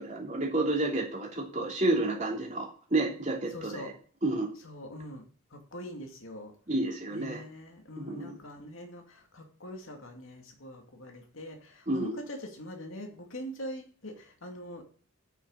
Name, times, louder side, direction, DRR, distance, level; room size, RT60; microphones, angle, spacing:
voice 1, 0.0-3.9 4.2-4.5 6.7-7.4 8.0-8.4 11.9-12.2, right 2 dB, 35° right, -1 dB, 3.1 m, -30 dB
voice 2, 3.5-3.9 4.6-5.2 5.5-6.5 7.1-14.8, equal, 70° left, 3 dB, 2.3 m, -43 dB
8.6 x 6.5 x 6.4 m, 0.43 s
head